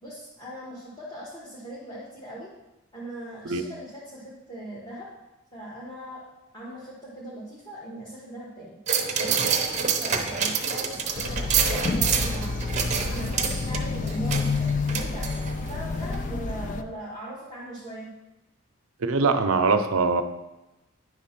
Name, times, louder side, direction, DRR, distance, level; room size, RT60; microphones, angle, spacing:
voice 1, 0.0-2.5 2.9-5.1 5.5-6.2 6.5-8.8 9.2-12.6 13.0-15.3 15.7-18.1, right 1 dB, 20° left, -8 dB, 1.4 m, -39 dB
sound 1, 8.9-15.8 16.1-16.2, right 6 dB, 35° right, 0.7 m, -27 dB
sound 2, 11.2-16.8, left 3 dB, 35° left, 0.3 m, -29 dB
voice 2, 19.0-20.2, right 4 dB, 85° right, 8 dB, 0.6 m, -22 dB
9.9 x 3.6 x 5.8 m, 0.96 s
head